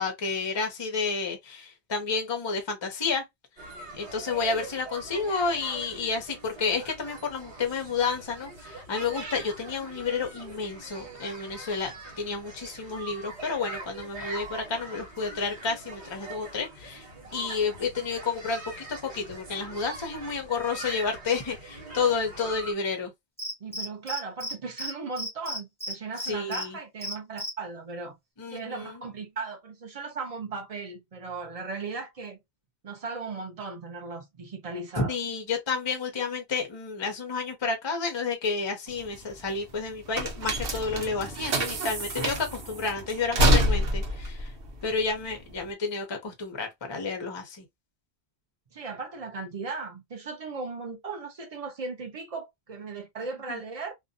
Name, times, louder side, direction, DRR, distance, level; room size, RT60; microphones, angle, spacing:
voice 1, 0.0-3.2 3.9-17.0 17.3-23.1 26.2-26.8 28.4-29.0 35.0-44.5 44.8-47.6 53.5-53.6, left 4 dB, 35° left, 0.4 m, -30 dB
sound 1, 3.6-22.7, right 2 dB, 75° right, 1.4 m, -42 dB
Cricket, 23.4-24.5 24.8-24.9 25.2-26.6 27.0-27.5, equal, 5° left, 0.8 m, -33 dB
voice 2, 23.6-28.2 28.5-32.4 32.8-35.2 48.7-53.9, right 4 dB, 40° right, 0.5 m, -37 dB
sound 2, 38.9-45.7, equal, 60° right, 1.0 m, -27 dB
2.6 x 2.2 x 2.5 m
omnidirectional pair, 1.1 m